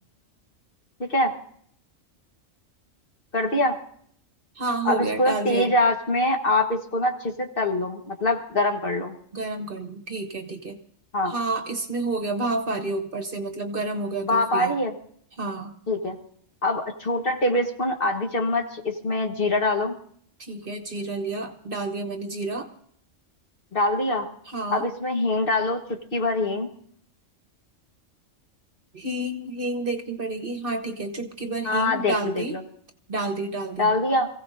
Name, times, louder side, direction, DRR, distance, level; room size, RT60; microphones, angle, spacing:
voice 1, 1.0-1.3 3.3-3.8 4.8-9.1 11.1-11.3 14.2-14.9 15.9-16.2 16.6-20.0 23.7-24.3 24.7-26.7 31.6-32.6 33.8-34.3, left 2 dB, 45° left, 3 dB, 1.5 m, -24 dB
voice 2, 4.5-5.7 9.3-10.8 11.3-14.7 15.4-15.8 20.4-22.7 24.5-24.8 28.9-32.6 33.1-33.9, right 2 dB, 45° right, 7 dB, 1.2 m, -30 dB
27.0 x 16.0 x 2.6 m, 0.63 s
omnidirectional pair, 1.3 m